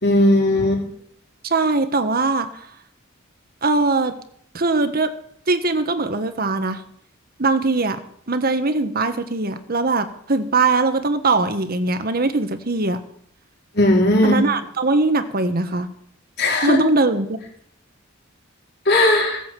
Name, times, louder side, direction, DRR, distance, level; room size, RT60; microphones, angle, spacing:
voice 1, 0.0-0.8 13.8-14.4 16.4-16.8 18.9-19.4, left 1 dB, 55° left, 0 dB, 3.9 m, -17 dB
voice 2, 1.4-2.7 3.6-4.1 4.5-5.1 5.5-6.8 7.4-8.0 8.3-13.0 14.2-15.9 16.6-17.4, right 3 dB, 50° right, 9 dB, 1.5 m, -21 dB
17.0 x 8.5 x 7.8 m, 0.66 s
head